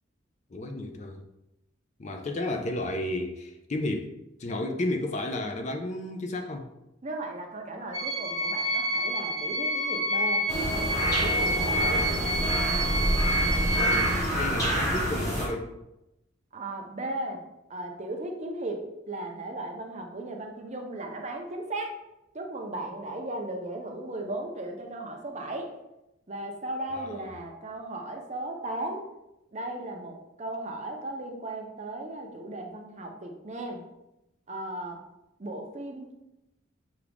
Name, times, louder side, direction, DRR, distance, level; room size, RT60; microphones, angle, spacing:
voice 1, 0.5-1.2 2.0-4.1 4.4-6.7 13.7-15.7 26.9-27.3, left 2 dB, 35° left, 4 dB, 0.4 m, -32 dB
voice 2, 7.0-12.3 16.5-17.4 17.7-22.0 22.3-25.7 26.3-29.0 29.5-33.8 34.5-35.0 35.4-36.1, right 2 dB, 35° right, 2 dB, 0.6 m, -36 dB
sound 1, 7.9-14.2, right 1 dB, 70° right, 1.1 m, -28 dB
sound 2, 10.5-15.5, equal, 15° left, 1.1 m, -27 dB
5.9 x 2.4 x 3.4 m, 0.90 s
head